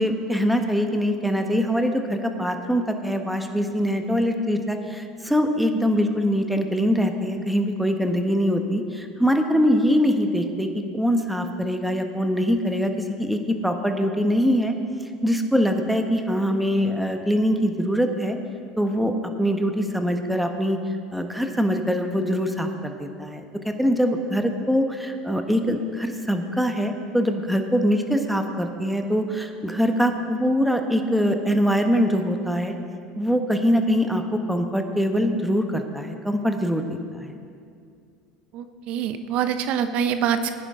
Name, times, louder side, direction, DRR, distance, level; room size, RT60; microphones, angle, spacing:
voice 1, 0.0-12.9 13.2-14.7 15.2-18.4 18.8-20.8 21.1-32.7 33.1-37.3, equal, ahead, 5 dB, 1.2 m, -23 dB
voice 2, 38.5-40.5, right 8 dB, 60° right, 10 dB, 0.8 m, -25 dB
18.0 x 10.0 x 3.8 m, 2.4 s
hypercardioid pair, 85°, 2 cm